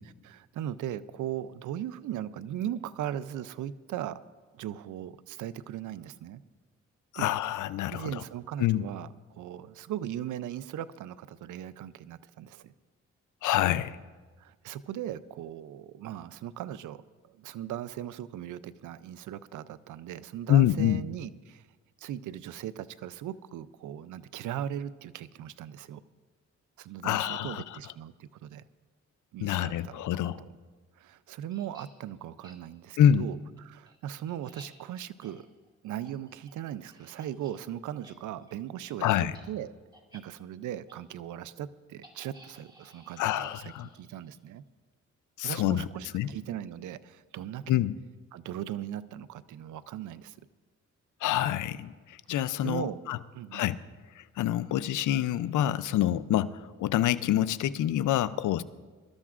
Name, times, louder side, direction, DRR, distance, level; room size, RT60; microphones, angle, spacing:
voice 1, 0.2-4.2 4.5-6.4 7.1-7.3 7.9-12.7 14.4-17.0 17.3-21.7 22.0-26.0 26.8-28.6 29.3-30.0 31.0-35.5 35.8-39.7 40.1-44.6 45.4-47.8 48.3-50.4 52.6-53.0 53.3-53.6, right 11 dB, 85° right, 16 dB, 0.5 m, -38 dB
voice 2, 7.1-8.2 8.6-8.8 13.4-14.0 20.5-21.0 27.0-27.6 29.4-30.4 33.0-33.2 39.0-39.4 43.2-43.9 45.4-45.9 46.1-46.3 47.7-48.0 51.2-53.2 53.5-53.8 54.2-58.6, left 11 dB, 85° left, 15 dB, 0.5 m, -26 dB
sound 1, 31.5-31.9 32.4-32.6 33.0-33.1 33.6-37.6 37.9-38.1 38.4-38.6 38.9-39.0 39.3-39.5 39.9-40.2 40.9-41.0 42.0-44.4, right 1 dB, 15° right, 2.2 m, -56 dB
22.5 x 13.0 x 2.5 m, 1.4 s
cardioid pair, 80°, 30 cm